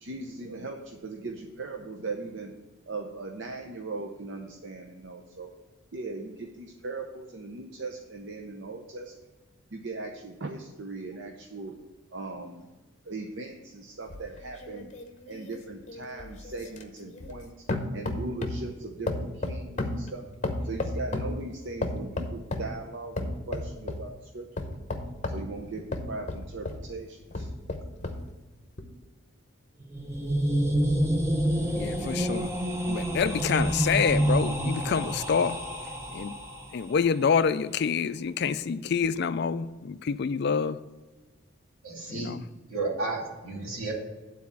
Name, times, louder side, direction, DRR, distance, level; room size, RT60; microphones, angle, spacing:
voice 1, 0.0-2.5 2.9-5.5 5.9-9.1 9.7-11.7 12.1-12.7 13.0-14.9 15.3-17.5 17.9-20.2 20.6-24.5 25.3-27.5, right 3 dB, 55° right, 0.7 m, -39 dB
sound 1, 14.1-17.4 17.7-18.7 19.1-21.4 21.8-22.7 23.2-24.1 24.6-26.9 27.3-28.3 28.8-28.9, left 2 dB, 35° left, 0.8 m, -33 dB
sound 2, 29.8-36.8, right 1 dB, 10° right, 0.7 m, -28 dB
voice 2, 31.7-32.5 32.9-35.6 36.1-36.3 36.7-40.8 42.1-42.4, left 6 dB, 50° left, 0.3 m, -27 dB
voice 3, 41.8-42.4 42.7-43.9, right 3 dB, 75° right, 2.5 m, -32 dB
9.5 x 4.2 x 7.1 m
head